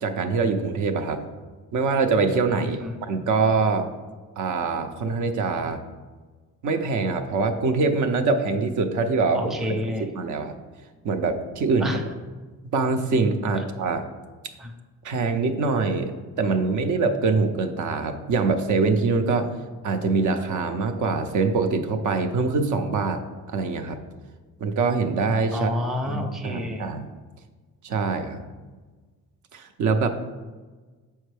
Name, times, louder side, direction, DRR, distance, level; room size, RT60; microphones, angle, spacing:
voice 1, 0.0-1.3 1.7-3.9 4.4-5.8 6.6-9.5 10.0-10.6 11.0-11.9 12.7-14.0 15.0-16.1 16.4-19.5 19.8-23.2 23.5-24.0 24.6-25.7 26.0-27.1 27.8-28.4 29.5-30.1, right 4 dB, 60° right, 6 dB, 0.7 m, -24 dB
voice 2, 2.6-3.0 9.3-10.1 11.8-12.0 14.6-14.7 25.5-26.9, left 1 dB, ahead, 3 dB, 0.6 m, -29 dB
7.1 x 4.5 x 3.3 m, 1.3 s
cardioid pair, 105°, 34 cm